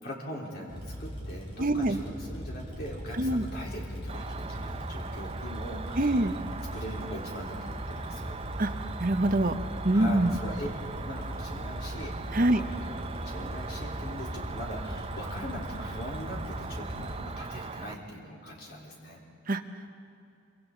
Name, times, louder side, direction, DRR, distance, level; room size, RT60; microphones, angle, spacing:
voice 1, 0.0-6.4 6.7-8.4 9.9-10.7 11.0-19.2, equal, 50° left, -3 dB, 3.9 m, -41 dB
sound 1, 0.7-17.2, equal, 25° left, 3.6 m, -39 dB
voice 2, 1.6-2.0 3.1-3.5 6.0-6.4 8.6-8.7 9.0-9.5 9.8-10.4 12.3-12.6 19.5-19.6, right 1 dB, 45° right, 7 dB, 0.9 m, -24 dB
Cricket, 4.1-17.9, right 4 dB, 30° right, 0.5 m, -40 dB
26.5 x 25.0 x 3.9 m, 2.6 s
head